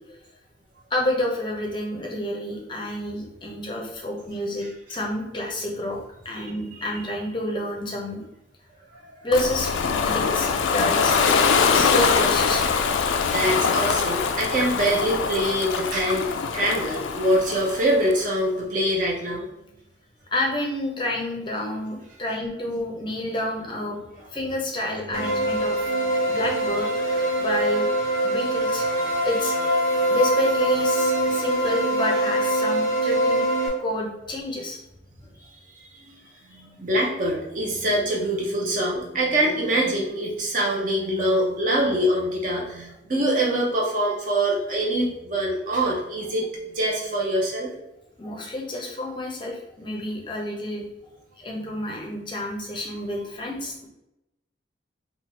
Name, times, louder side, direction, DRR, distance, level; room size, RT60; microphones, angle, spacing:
voice 1, 0.9-6.0 6.2-8.2 9.2-9.7 10.0-12.6 20.3-25.8 26.2-27.9 28.2-29.5 30.1-33.4 33.8-34.8 48.2-50.9 51.4-53.9, left 1 dB, 25° left, -1 dB, 0.6 m, -29 dB
voice 2, 6.4-7.0 8.9-9.3 13.3-19.5 25.1-25.4 31.3-31.4 36.1-47.7 51.6-51.7, right 1 dB, 45° right, -2 dB, 0.7 m, -25 dB
Ocean, 9.3-18.2, left 6 dB, 80° left, 0.4 m, -23 dB
sound 1, 25.1-33.7, right 1 dB, 90° right, 1.4 m, -23 dB
3.1 x 2.3 x 4.0 m, 0.88 s
head